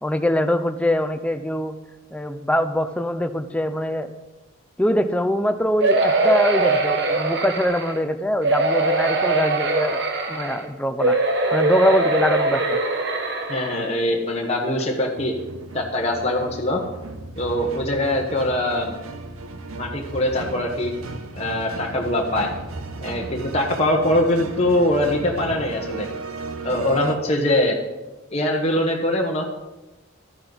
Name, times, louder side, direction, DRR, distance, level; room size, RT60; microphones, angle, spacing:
voice 1, 0.0-1.8 2.1-4.1 4.8-10.0 10.3-11.2 11.5-12.8, equal, 5° left, 9 dB, 0.5 m, -23 dB
sound 1, 5.8-8.0 8.4-10.6 11.0-13.8 14.4-14.5 14.8-14.9, right 2 dB, 55° right, 1.3 m, -22 dB
voice 2, 13.5-15.3 15.7-16.8 17.4-18.9 19.8-20.9 21.3-22.5 23.0-26.1 26.6-27.8 28.3-29.4, left 1 dB, 30° left, 0 dB, 1.2 m, -22 dB
sound 2, 15.1-27.2, right 3 dB, 85° right, 0.8 m, -35 dB
12.5 x 10.0 x 4.0 m, 1.1 s
head